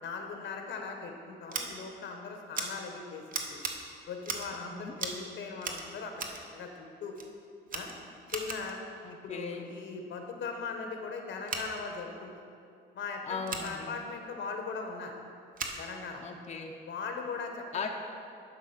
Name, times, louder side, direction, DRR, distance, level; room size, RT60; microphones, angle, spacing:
voice 1, 0.0-3.6 4.1-6.1 6.5-7.1 7.7-7.9 8.3-8.8 9.2-12.3 12.9-15.1 15.8-16.3 16.9-17.9, left 5 dB, 70° left, 3 dB, 1.1 m, -39 dB
Scissors, 1.5-1.6 2.5-2.7 3.3-3.7 4.2-4.6 5.0-5.2 5.6-6.4 7.2-7.3 7.7-8.8 11.4-11.6 13.4-13.7 15.5-15.8, right 4 dB, 45° right, 0.9 m, -37 dB
voice 2, 4.5-4.9 9.0-9.7 13.2-13.9 16.2-16.8 17.7-17.9, left 5 dB, 35° left, 2 dB, 0.6 m, -38 dB
11.0 x 3.8 x 5.8 m, 2.5 s
cardioid pair, 90°, 20 cm